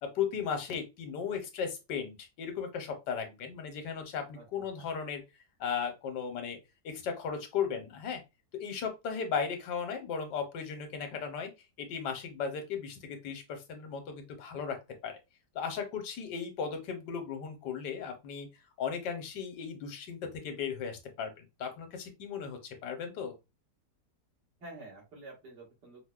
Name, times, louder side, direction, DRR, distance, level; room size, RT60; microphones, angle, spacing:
voice 1, 0.0-5.2 5.6-6.6 6.8-8.2 8.5-11.5 11.8-15.2 15.5-18.5 18.8-23.3, left 6 dB, 80° left, 5 dB, 1.4 m, -36 dB
voice 2, 4.3-4.9 24.6-26.0, right 2 dB, 85° right, -4 dB, 2.2 m, -49 dB
4.8 x 2.0 x 2.3 m, 0.24 s
omnidirectional pair, 1.8 m